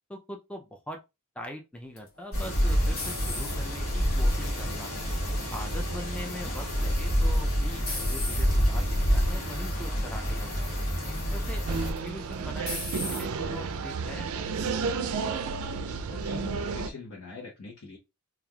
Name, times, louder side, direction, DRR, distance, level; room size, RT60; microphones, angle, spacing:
voice 1, 0.1-1.0 1.4-5.0 5.5-10.8 11.3-14.3, equal, 5° left, 0.3 m, -42 dB
sound 1, 2.0-3.9 4.4-4.9 7.0-7.3 7.9-8.5 9.3-9.5 9.9-10.0 12.0-12.3 12.7-13.3, left 3 dB, 45° left, 1.1 m, -36 dB
sound 2, 2.3-11.9, equal, 85° left, 1.2 m, -27 dB
sound 3, 11.7-16.9, right 5 dB, 75° right, 0.4 m, -32 dB
voice 2, 16.1-18.0, left 3 dB, 65° left, 0.9 m, -43 dB
3.2 x 2.4 x 2.2 m
head